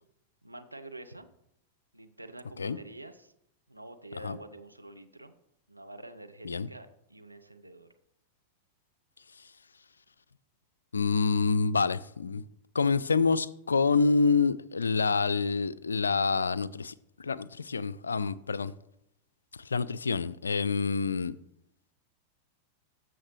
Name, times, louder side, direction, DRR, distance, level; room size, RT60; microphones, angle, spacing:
voice 1, 0.4-1.3 1.9-3.3 3.7-5.3 5.7-7.9, right 2 dB, 85° right, 0.7 m, -47 dB
voice 2, 10.9-12.4 12.7-16.9 17.2-18.7 19.7-21.3, left 4 dB, 75° left, 0.3 m, -27 dB
13.5 x 6.2 x 3.1 m
figure-of-eight pair, 90°, 0 cm